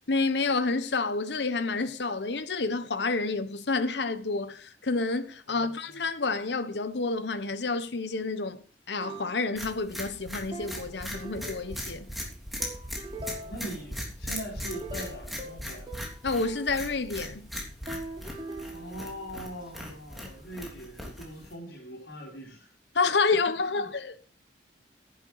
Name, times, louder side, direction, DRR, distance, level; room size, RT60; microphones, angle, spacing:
voice 1, 0.1-12.1 16.2-17.5 22.9-24.2, left 3 dB, 70° left, 1.0 m, -29 dB
sound 1, 9.0-9.8 10.5-12.1 12.6-13.8 14.3-16.8 17.9-19.7, right 1 dB, 30° right, 3.4 m, -42 dB
sound 2, 9.6-21.5, equal, ahead, 3.1 m, -39 dB
voice 2, 13.1-15.9 18.7-22.7 23.7-23.9, right 1 dB, 85° left, 4.3 m, -42 dB
11.0 x 10.5 x 4.8 m
head